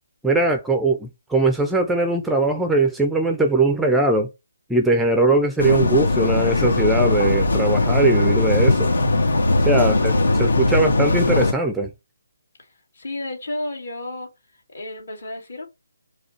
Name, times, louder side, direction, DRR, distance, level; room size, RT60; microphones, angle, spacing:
voice 1, 0.2-4.3 4.7-8.9 9.6-10.1 10.4-11.9, right 2 dB, 5° right, 0.4 m, -20 dB
sound 1, 5.6-11.5, left 2 dB, 80° left, 1.4 m, -19 dB
voice 2, 9.8-10.8 12.6-12.7 12.9-14.3 14.7-15.7, left 1 dB, 60° left, 2.2 m, -33 dB
4.8 x 2.3 x 4.3 m
figure-of-eight pair, 150°, 0 cm